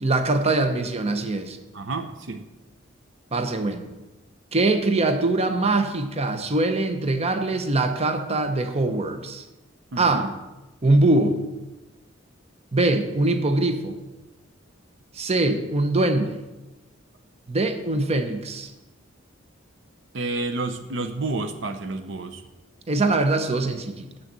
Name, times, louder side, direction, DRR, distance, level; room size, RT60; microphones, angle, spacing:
voice 1, 0.0-1.6 3.3-3.9 4.5-9.4 10.0-10.3 10.8-11.4 12.7-14.0 15.1-16.4 17.5-18.7 22.9-24.1, right 2 dB, 35° right, 7 dB, 0.8 m, -22 dB
voice 2, 1.7-2.5 9.9-10.3 20.1-22.4, right 2 dB, 70° right, 8 dB, 0.7 m, -30 dB
7.7 x 6.5 x 7.3 m, 1.0 s
head